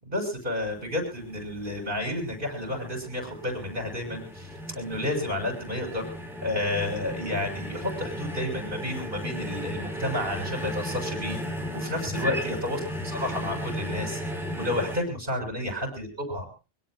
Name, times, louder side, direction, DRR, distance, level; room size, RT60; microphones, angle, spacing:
voice 1, 0.0-4.5 4.7-6.1 6.4-11.4 11.7-14.2 14.6-16.6, left 1 dB, 50° right, 5 dB, 6.9 m, -31 dB
sound 1, 0.7-15.0, equal, ahead, 4.8 m, -35 dB
25.5 x 17.5 x 2.2 m, 0.33 s
omnidirectional pair, 1.2 m